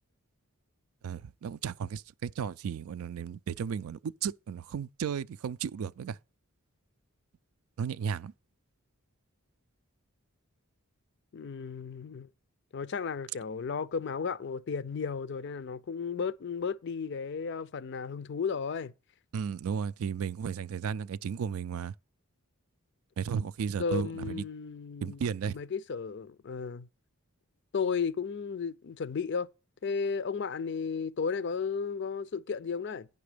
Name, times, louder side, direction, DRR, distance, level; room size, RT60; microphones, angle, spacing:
voice 1, 1.0-6.2 7.8-8.3 19.3-21.9 23.2-24.4 25.0-25.6, right 7 dB, 75° right, 0.3 m, -34 dB
voice 2, 11.3-12.3 12.7-18.9 23.8-25.2 25.5-26.9 27.7-29.5 29.8-33.1, left 5 dB, 50° left, 0.4 m, -34 dB
9.5 x 6.0 x 4.9 m
head